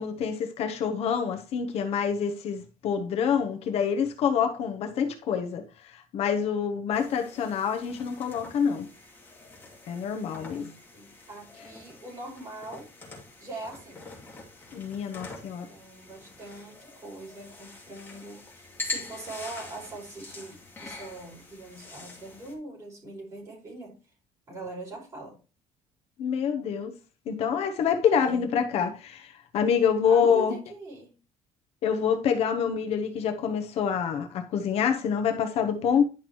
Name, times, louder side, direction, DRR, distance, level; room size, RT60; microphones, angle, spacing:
voice 1, 0.0-8.9 9.9-10.7 14.7-15.7 26.2-26.9 27.3-30.6 31.8-36.0, left 7 dB, 50° left, 0.9 m, -26 dB
sound 1, 6.9-22.5, left 2 dB, 15° left, 2.5 m, -44 dB
voice 2, 10.3-12.9 13.4-14.0 15.7-23.9 24.5-25.4 28.1-28.4 30.0-31.1, right 2 dB, 25° right, 5.4 m, -42 dB
11.0 x 5.9 x 3.0 m
cardioid pair, 180°, 13 cm